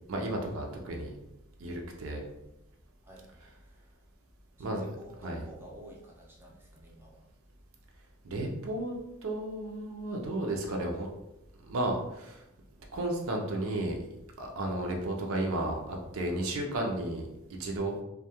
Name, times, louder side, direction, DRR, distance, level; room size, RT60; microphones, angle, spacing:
voice 1, 0.1-1.1 1.6-2.2 4.6-4.8 5.2-5.4 8.2-9.0 9.2-11.1 11.7-12.4 12.9-14.0 14.4-17.3 17.6-18.0, right 1 dB, 70° right, 1 dB, 0.5 m, -33 dB
voice 2, 3.0-3.9 4.6-7.3, right 1 dB, 10° right, -3 dB, 0.4 m, -51 dB
2.2 x 2.1 x 2.8 m, 0.89 s
head